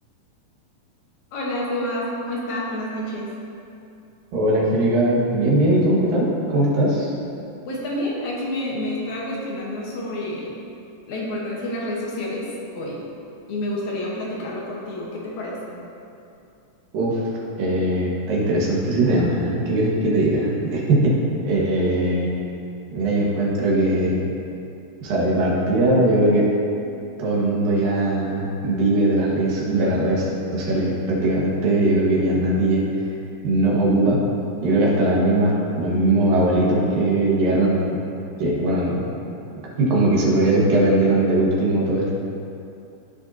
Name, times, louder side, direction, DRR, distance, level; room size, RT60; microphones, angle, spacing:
voice 1, 1.3-3.3 7.7-10.5 11.1-12.5 12.7-13.0 13.5-15.7, left 1 dB, 65° left, -4 dB, 2.5 m, -28 dB
voice 2, 4.3-7.1 16.9-17.2 17.6-21.2 21.4-22.3 22.9-24.2 25.0-26.5 27.2-32.8 33.4-34.2 34.6-38.0 38.4-39.0 39.8-42.1, right 1 dB, 85° right, -5 dB, 3.4 m, -20 dB
15.5 x 6.5 x 2.8 m, 2.6 s
omnidirectional pair, 3.8 m